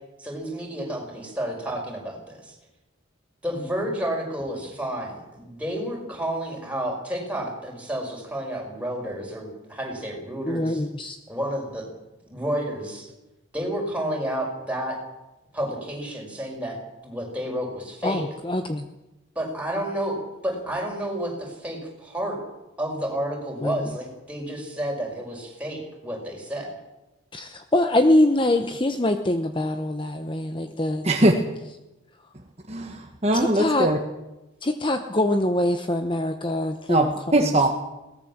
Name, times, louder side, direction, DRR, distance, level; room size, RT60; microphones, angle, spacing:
voice 1, 0.2-2.5 3.4-10.8 11.3-11.9 12.3-13.1 13.5-15.0 15.5-18.2 19.4-22.4 22.8-26.7, right 1 dB, 5° right, 5.8 m, -30 dB
voice 2, 10.5-11.2 18.0-18.9 23.6-23.9 27.3-31.1 33.3-33.9 34.6-37.1 37.4-37.5, left 1 dB, 25° left, 0.9 m, -24 dB
voice 3, 32.7-34.0 36.9-37.7, right 1 dB, 30° right, 1.5 m, -21 dB
21.5 x 18.5 x 7.4 m
head